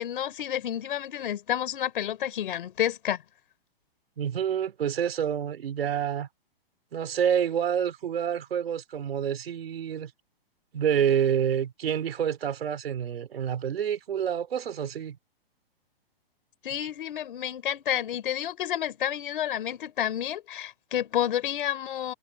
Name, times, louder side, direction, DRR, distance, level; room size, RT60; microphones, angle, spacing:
voice 1, 0.0-3.2 16.6-22.1, left 10 dB, 60° left, 4.6 m, -30 dB
voice 2, 4.2-6.3 6.9-10.1 10.7-15.2, right 9 dB, 75° right, 4.3 m, -28 dB
hypercardioid pair, 160°, 30 cm